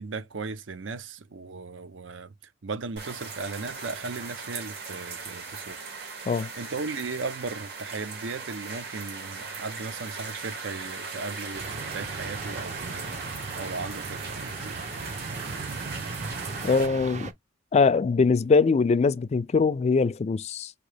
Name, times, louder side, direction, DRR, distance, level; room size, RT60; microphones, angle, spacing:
voice 1, 0.0-2.3 2.6-6.3 6.6-13.1 13.6-14.8, right 4 dB, 80° right, 0.6 m, -37 dB
sound 1, 3.0-16.9, right 4 dB, 60° right, 2.0 m, -38 dB
sound 2, 11.5-17.3, right 3 dB, 40° right, 0.6 m, -37 dB
voice 2, 16.6-17.3 17.7-20.7, left 4 dB, 35° left, 0.3 m, -22 dB
5.1 x 2.8 x 3.3 m
head